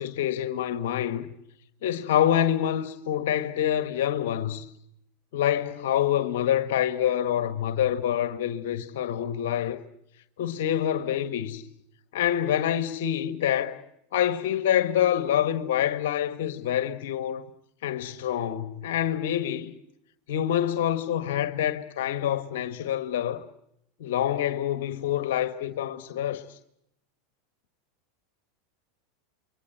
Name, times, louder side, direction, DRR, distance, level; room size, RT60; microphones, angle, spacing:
voice 1, 0.0-1.3 1.8-4.7 5.3-9.8 10.4-11.6 12.1-13.8 14.1-17.4 17.8-19.7 20.3-23.4 24.0-26.6, left 10 dB, 70° left, 1.5 m, -26 dB
29.0 x 23.5 x 8.0 m
hypercardioid pair, 90°, 0 cm